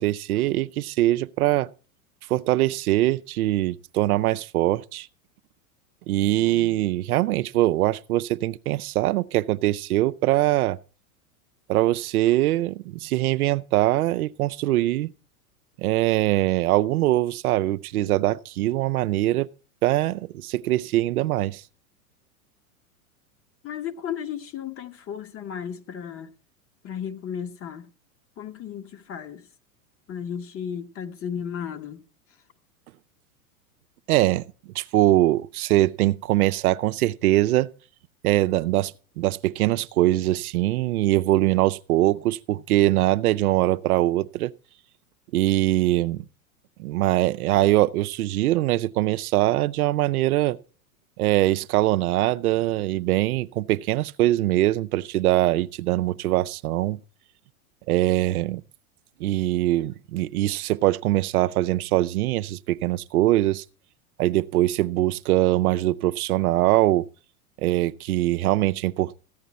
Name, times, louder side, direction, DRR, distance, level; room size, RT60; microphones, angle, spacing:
voice 1, 0.0-1.7 2.3-5.1 6.1-10.8 11.7-15.1 15.8-19.5 19.8-21.6 34.1-34.4 34.7-37.7 38.2-44.5 45.3-46.2 46.8-50.6 51.2-57.0 57.9-58.6 59.2-63.6 64.2-67.1 67.6-69.2, right 16 dB, 80° right, 0.6 m, -22 dB
voice 2, 23.6-26.3 26.8-27.9 28.4-29.4 30.1-32.0, left 8 dB, 30° left, 1.1 m, -34 dB
15.0 x 9.1 x 4.1 m
hypercardioid pair, 115°, 44 cm